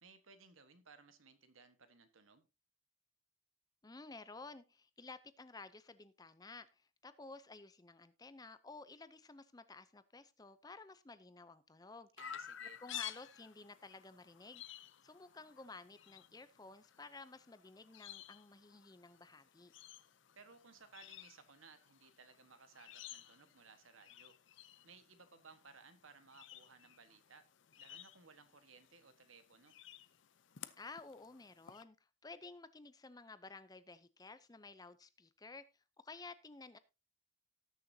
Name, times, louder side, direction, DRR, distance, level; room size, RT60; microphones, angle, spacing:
voice 1, 0.0-2.5 12.2-12.8 20.3-24.4 24.8-27.5 27.8-29.8, right 4 dB, 80° right, 10 dB, 1.4 m, -61 dB
voice 2, 3.8-12.1 12.8-14.6 15.0-19.7 30.8-35.6 36.0-36.8, left 3 dB, 20° left, 13 dB, 0.5 m, -53 dB
Chirp tweet, 12.2-31.8, left 11 dB, 65° left, 0.6 m, -54 dB
18.5 x 6.7 x 2.7 m, 0.27 s
head